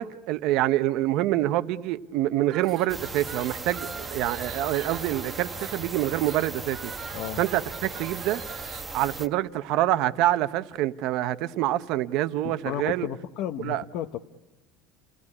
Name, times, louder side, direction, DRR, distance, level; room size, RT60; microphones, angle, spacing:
voice 1, 0.0-6.9 7.4-8.4 8.9-13.1 13.6-13.8, right 14 dB, 55° right, 0.8 m, -26 dB
sound 1, 2.4-8.9, right 8 dB, 40° right, 1.1 m, -43 dB
sound 2, 2.9-9.3, right 3 dB, 15° right, 1.0 m, -37 dB
voice 2, 12.4-14.2, left 12 dB, 55° left, 0.8 m, -33 dB
29.0 x 18.0 x 9.8 m
cardioid pair, 165°, 0 cm